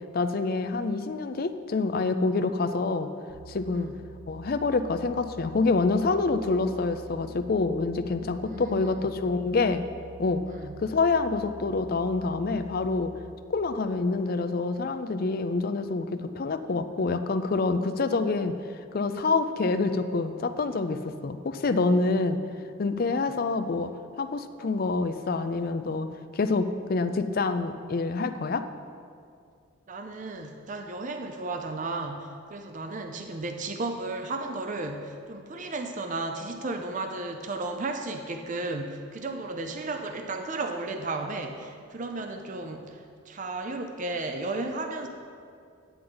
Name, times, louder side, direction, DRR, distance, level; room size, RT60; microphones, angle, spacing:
voice 1, 0.1-3.1 3.5-3.9 4.3-9.8 10.2-10.4 10.8-13.1 13.5-18.6 18.9-22.4 22.8-23.9 24.2-26.1 26.3-28.6, left 3 dB, 45° left, 10 dB, 0.4 m, -27 dB
sound 1, 3.3-13.3, right 3 dB, 25° right, 1.7 m, -47 dB
voice 2, 8.4-9.0 10.5-10.8 23.3-23.4 29.9-45.1, right 2 dB, 40° right, 5 dB, 0.5 m, -34 dB
10.0 x 9.1 x 3.9 m, 2.3 s
head